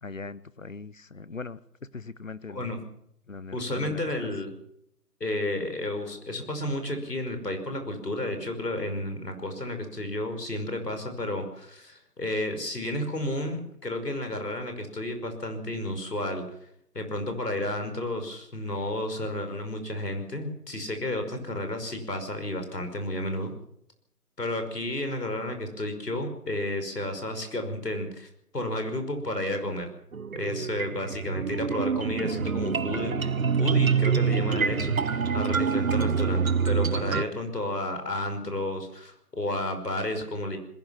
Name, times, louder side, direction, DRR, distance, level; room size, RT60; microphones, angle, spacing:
voice 1, 0.0-2.7 3.3-4.3, left 4 dB, 55° left, 18 dB, 1.0 m, -40 dB
voice 2, 2.5-2.8 3.5-4.5 5.2-16.5 16.9-23.5 24.4-29.9 30.3-33.3 33.6-40.6, left 1 dB, 80° left, 6 dB, 5.6 m, -32 dB
sound 1, 30.1-37.2, right 6 dB, 60° right, 0.7 m, -26 dB
21.0 x 17.0 x 7.4 m, 0.71 s
figure-of-eight pair, 175°, 47 cm